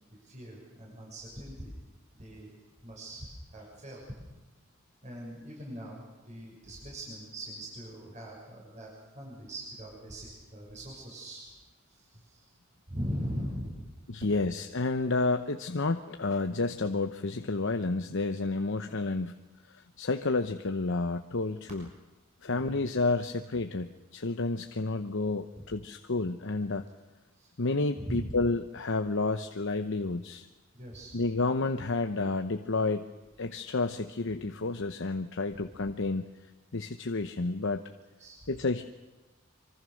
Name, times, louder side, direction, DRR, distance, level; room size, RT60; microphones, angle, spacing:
voice 1, 0.2-1.7 2.1-2.5 2.8-4.0 5.0-11.5 11.9-12.5 12.9-13.9 22.5-22.7 25.5-25.7 27.4-27.5 28.0-28.3 30.7-31.2 38.2-38.5, equal, 35° right, -3 dB, 6.5 m, -41 dB
voice 2, 14.1-19.3 19.7-21.9 22.4-26.8 27.6-30.5 31.1-33.1 33.4-36.2 36.7-37.8 38.5-38.8, left 3 dB, 65° left, 7 dB, 0.9 m, -30 dB
25.5 x 24.5 x 6.5 m, 1.1 s
head